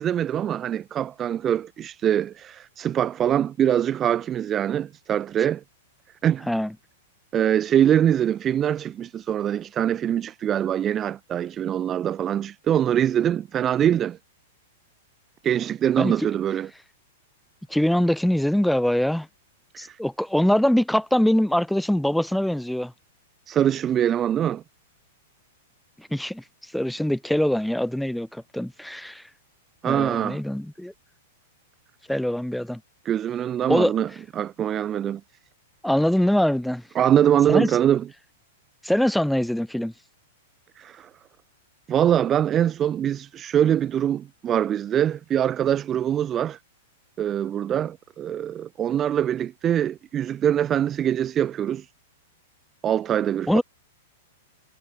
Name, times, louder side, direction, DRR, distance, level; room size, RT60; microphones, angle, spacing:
voice 1, 0.0-5.6 6.2-6.5 7.3-14.2 15.4-16.7 19.7-20.0 23.5-24.6 29.8-30.4 33.1-34.1 34.4-35.2 37.0-38.0 40.8-41.1 41.9-46.6 47.2-51.9 52.8-53.6, right 10 dB, 25° right, 1.8 m, -23 dB
voice 2, 17.7-19.3 19.8-22.9 26.0-29.2 29.8-30.9 32.1-32.8 33.7-33.9 35.8-36.8 37.5-37.7 38.8-39.9 53.5-53.6, left 1 dB, ahead, 7.2 m, -23 dB
hypercardioid pair, 120°, 0 cm